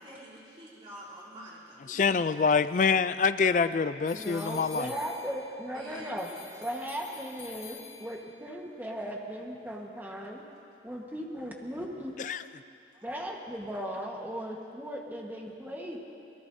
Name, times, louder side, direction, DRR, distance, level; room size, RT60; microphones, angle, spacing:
voice 1, 0.0-2.0 5.7-6.4 12.9-13.1, equal, 30° right, -8 dB, 3.5 m, -47 dB
voice 2, 1.9-4.9 12.2-12.4, left 5 dB, 45° left, 13 dB, 0.3 m, -26 dB
sound 1, 4.0-5.7 6.2-8.4, left 7 dB, 65° left, 3.5 m, -48 dB
voice 3, 4.2-6.3 6.6-10.4 10.8-12.2 13.0-16.0, equal, 10° right, -1 dB, 1.4 m, -37 dB
26.0 x 19.0 x 2.7 m, 2.6 s
head